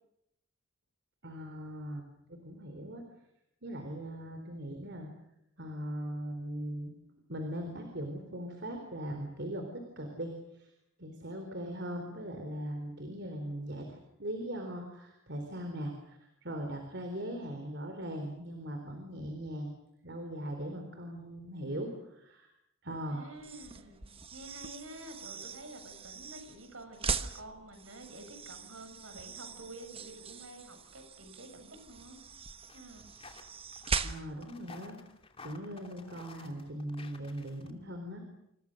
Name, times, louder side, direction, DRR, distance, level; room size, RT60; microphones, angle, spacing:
voice 1, 1.2-3.0 3.6-5.1 5.6-6.9 7.3-10.7 11.0-19.7 20.0-22.5 22.8-23.3 34.0-35.0 35.4-38.2, equal, 55° right, 4 dB, 3.9 m, -40 dB
voice 2, 23.1-32.2 32.7-33.1, right 1 dB, 75° right, 7 dB, 6.7 m, -49 dB
sound 1, 23.4-34.5, right 5 dB, 25° right, 1.2 m, -41 dB
sound 2, 32.7-37.7, left 4 dB, 25° left, 2.6 m, -53 dB
27.5 x 27.5 x 6.6 m, 0.82 s
head